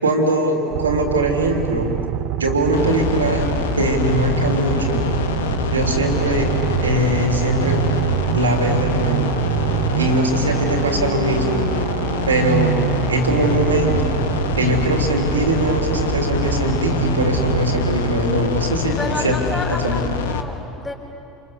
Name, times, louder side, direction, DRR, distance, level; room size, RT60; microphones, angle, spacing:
voice 1, 0.0-1.9 2.4-3.5 3.7-5.0 5.7-6.5 6.8-7.9 8.3-9.3 9.9-11.9 12.2-12.7 13.1-14.1 14.5-20.1, right 1 dB, 80° right, 3 dB, 3.1 m, -21 dB
sound 1, 0.7-18.8, right 15 dB, 55° right, 0.6 m, -25 dB
sound 2, 2.7-20.4, left 6 dB, 70° left, 1.4 m, -25 dB
voice 2, 19.0-20.9, left 2 dB, 15° left, 1 dB, 4.2 m, -29 dB
29.0 x 27.5 x 6.9 m, 2.8 s
figure-of-eight pair, 70°, 0 cm